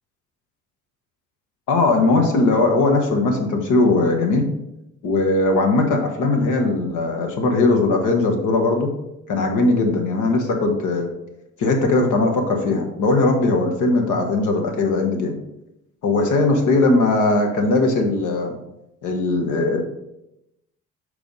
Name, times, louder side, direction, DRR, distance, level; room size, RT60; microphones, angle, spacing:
voice 1, 1.7-4.5 5.0-8.9 9.3-11.1 11.6-15.4 16.0-18.5 19.0-19.8, left 2 dB, 80° left, 4 dB, 1.2 m, -19 dB
7.0 x 3.3 x 5.2 m, 0.87 s
cardioid pair, 90°, 30 cm